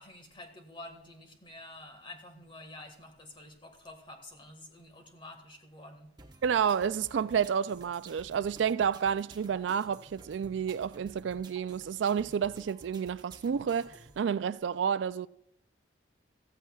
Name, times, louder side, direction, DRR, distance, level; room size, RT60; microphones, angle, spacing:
voice 1, 0.0-6.1, left 1 dB, 25° left, 1.7 m, -49 dB
sound 1, 6.2-14.2, right 2 dB, 25° right, 1.0 m, -53 dB
voice 2, 6.4-15.3, right 7 dB, 80° right, 0.3 m, -30 dB
15.0 x 14.5 x 2.4 m
head